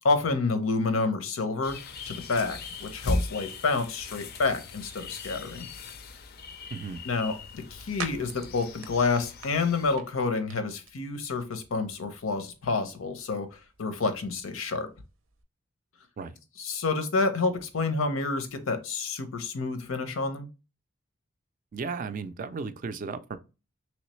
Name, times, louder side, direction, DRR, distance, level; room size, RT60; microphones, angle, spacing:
voice 1, 0.0-1.8 2.1-5.7 7.0-14.9 16.6-20.5, left 3 dB, 90° left, 0.7 m, -29 dB
sound 1, 1.6-10.0, left 2 dB, 50° left, 0.4 m, -38 dB
voice 2, 6.7-7.0 16.2-16.4 21.7-23.4, right 4 dB, 40° right, 0.3 m, -35 dB
sound 2, 6.8-15.4, right 5 dB, 85° right, 0.6 m, -47 dB
3.2 x 3.1 x 3.0 m
head